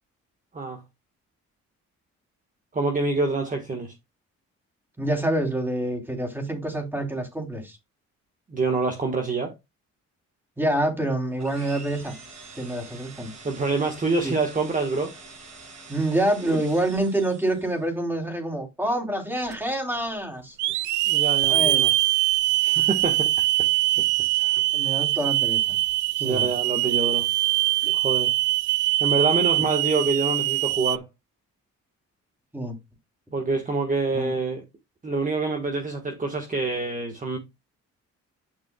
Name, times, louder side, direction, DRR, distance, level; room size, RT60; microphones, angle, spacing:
voice 1, 2.7-3.9 8.5-9.5 11.6-11.8 13.4-15.1 16.4-16.6 21.1-21.9 22.6-23.3 24.4-24.6 26.2-27.2 27.9-28.3 29.0-31.1 33.3-34.6 35.0-37.4, right 3 dB, 25° right, 1.6 m, -26 dB
voice 2, 5.0-7.8 10.6-12.1 12.6-13.3 14.2-14.3 15.9-20.5 21.5-21.8 24.7-25.8 26.2-26.5 27.8-27.9 32.5-32.8 34.1-34.3, right 1 dB, 5° right, 3.4 m, -27 dB
sound 1, 11.4-17.9, right 4 dB, 60° right, 6.0 m, -46 dB
Hiss / Alarm, 19.5-19.6 20.6-31.0, right 16 dB, 75° right, 0.4 m, -23 dB
10.5 x 6.1 x 2.3 m
cardioid pair, 90°, 30 cm